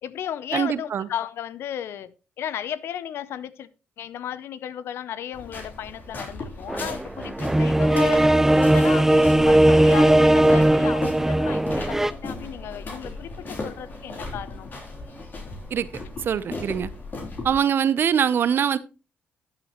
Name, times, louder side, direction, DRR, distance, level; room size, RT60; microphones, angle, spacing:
voice 1, 0.0-3.7 4.0-8.3 8.5-14.7, left 10 dB, 75° left, 0.6 m, -34 dB
voice 2, 0.5-1.1 15.7-15.9 16.2-16.9 17.4-18.8, right 8 dB, 60° right, 0.7 m, -23 dB
sound 1, 5.3-17.6, left 2 dB, 45° left, 3.5 m, -37 dB
sound 2, 6.7-12.1, right 1 dB, 10° right, 0.4 m, -18 dB
Bowed string instrument, 11.4-15.6, equal, 15° left, 2.6 m, -51 dB
12.5 x 7.5 x 3.0 m
cardioid pair, 70°, 4 cm